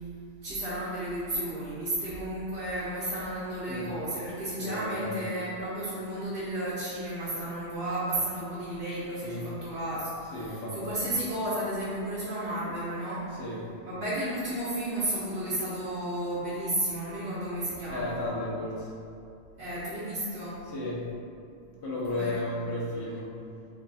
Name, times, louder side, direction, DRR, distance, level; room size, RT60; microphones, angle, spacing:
voice 1, 0.4-13.2 13.8-18.2 19.6-20.6 22.1-22.4, right 1 dB, 65° right, -10 dB, 0.9 m, -33 dB
voice 2, 4.6-5.1 9.2-9.5 10.3-10.8 13.3-13.6 17.9-18.9 20.6-21.0 21.6-23.3, left 1 dB, 90° left, -6 dB, 1.1 m, -34 dB
3.2 x 2.3 x 3.9 m, 2.5 s
omnidirectional pair, 1.1 m